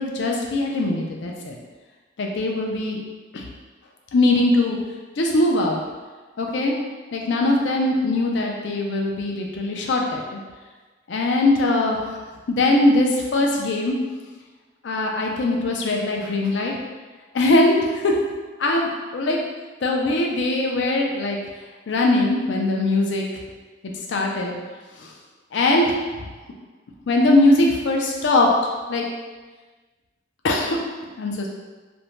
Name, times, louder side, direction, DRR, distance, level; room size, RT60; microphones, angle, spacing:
voice 1, 0.0-1.6 2.2-3.0 3.3-3.5 4.1-4.8 5.2-5.8 6.4-6.7 7.1-10.4 11.1-12.0 12.5-13.9 14.8-16.8 17.3-18.1 18.6-19.4 19.8-21.4 21.9-23.2 24.1-24.6 25.0-25.1 25.5-25.9 27.1-28.5 28.9-29.0 30.4-30.8 31.2-31.5, left 2 dB, 75° left, 0 dB, 0.4 m, -21 dB
2.5 x 2.1 x 3.0 m, 1.3 s
head